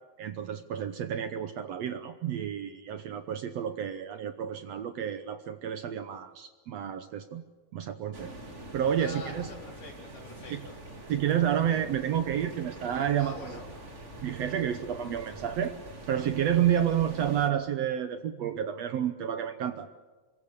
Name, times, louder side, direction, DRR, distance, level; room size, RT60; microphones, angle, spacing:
voice 1, 0.2-7.4 7.7-8.3 8.7-9.5 10.5-10.6 11.1-13.6 14.2-15.7 16.1-19.9, right 9 dB, 65° right, 9 dB, 1.8 m, -30 dB
sound 1, 8.1-17.5, right 1 dB, 25° right, 2.2 m, -45 dB
voice 2, 9.0-10.8 13.2-13.6, left 3 dB, 75° left, 0 dB, 5.9 m, -45 dB
27.0 x 22.5 x 6.8 m, 1.3 s
omnidirectional pair, 3.8 m